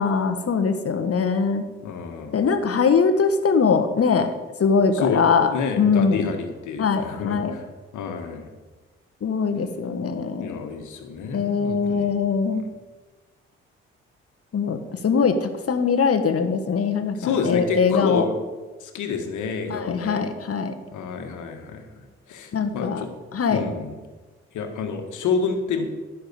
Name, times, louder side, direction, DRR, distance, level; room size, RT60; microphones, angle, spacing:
voice 1, 0.0-1.6 2.3-4.3 4.6-5.5 5.8-6.3 6.8-7.6 9.2-10.6 11.3-12.6 14.5-14.8 15.0-18.2 19.7-20.7 22.5-23.0 23.3-23.6, left 5 dB, 45° left, 9 dB, 1.5 m, -22 dB
voice 2, 1.8-2.4 4.9-5.2 5.5-7.7 7.9-8.5 10.4-12.1 12.6-12.7 17.1-18.3 18.8-20.3 20.9-23.1 23.5-24.0 24.5-25.9, left 5 dB, 65° left, 5 dB, 1.8 m, -29 dB
10.5 x 5.9 x 8.6 m, 1.3 s
hypercardioid pair, 45°, 32 cm